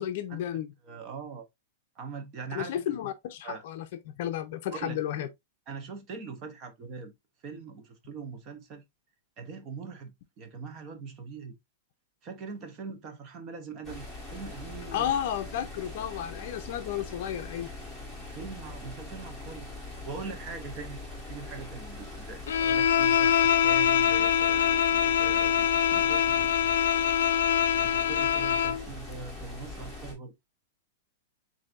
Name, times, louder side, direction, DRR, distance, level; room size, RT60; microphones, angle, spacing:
voice 1, 0.0-0.7 2.5-5.3 14.9-17.7, left 10 dB, 45° left, 0.6 m, -32 dB
voice 2, 0.8-1.5 2.0-2.8 3.4-3.6 4.7-5.0 5.7-7.1 7.4-8.8 9.4-11.6 12.2-15.1 18.3-19.7 20.0-26.5 27.7-30.3, right 5 dB, 25° right, 0.8 m, -42 dB
sound 1, 13.8-30.1, left 2 dB, 5° right, 1.5 m, -42 dB
Bowed string instrument, 22.5-28.8, left 9 dB, 90° left, 0.4 m, -24 dB
7.5 x 2.7 x 2.5 m
supercardioid pair, 175°, 0 cm